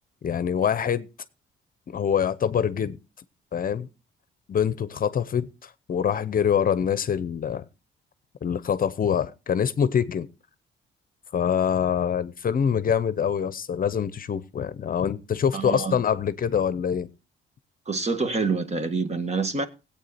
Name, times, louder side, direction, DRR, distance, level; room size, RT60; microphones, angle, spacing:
voice 1, 0.2-1.1 1.9-3.0 3.5-3.9 4.5-7.7 8.4-10.3 11.3-17.1, left 8 dB, 45° left, 0.8 m, -25 dB
voice 2, 15.5-16.0 17.9-19.7, right 4 dB, 35° right, 1.8 m, -26 dB
17.5 x 8.5 x 4.2 m
cardioid pair, 90°, 20 cm